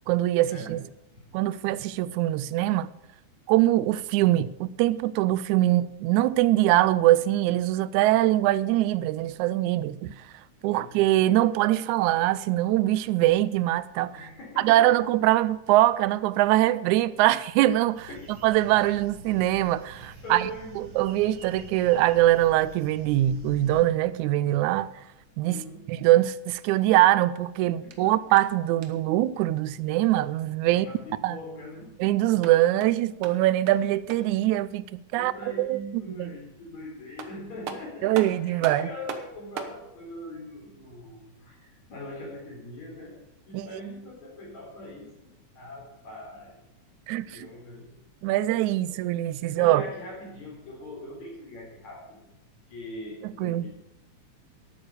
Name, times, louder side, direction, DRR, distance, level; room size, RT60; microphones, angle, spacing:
voice 1, 0.1-0.8 1.3-2.9 3.5-10.3 10.6-14.2 14.6-18.1 18.4-20.5 20.8-24.9 25.4-25.6 25.9-30.9 31.2-31.4 32.0-35.3 35.6-36.3 38.0-38.9 43.5-43.8 47.1-47.4 48.2-49.8 53.4-53.7, right 15 dB, 85° right, 1.9 m, -23 dB
voice 2, 14.1-14.8 18.1-18.2 20.2-21.0 25.5-25.8 27.8-28.1 30.7-31.9 35.1-43.2 43.5-46.6 47.2-47.9 48.9-49.0 49.4-52.2 52.7-53.7, left 1 dB, 65° left, 5.0 m, -41 dB
sound 1, 17.9-23.8, right 2 dB, 40° right, 2.9 m, -46 dB
sound 2, 27.9-29.2 32.2-34.4 36.7-36.8 37.2-39.8, right 6 dB, 60° right, 1.6 m, -41 dB
12.0 x 8.7 x 6.7 m
omnidirectional pair, 3.4 m